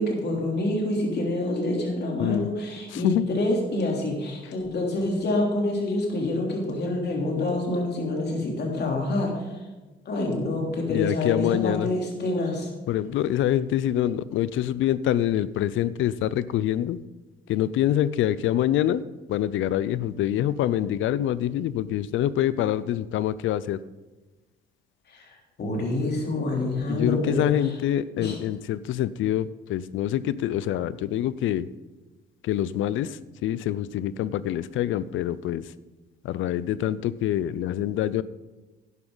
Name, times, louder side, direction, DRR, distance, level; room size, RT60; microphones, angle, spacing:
voice 1, 0.0-9.5 10.0-12.7 25.1-25.2 25.6-27.5 28.2-28.4, left 2 dB, 55° left, 0 dB, 3.4 m, -27 dB
voice 2, 2.9-3.2 10.9-11.9 12.9-17.0 17.5-19.0 19.3-23.8 26.9-31.7 32.4-35.7 36.2-38.2, left 12 dB, 80° left, 18 dB, 0.5 m, -25 dB
11.0 x 10.5 x 4.0 m, 1.2 s
cardioid pair, 90°, 20 cm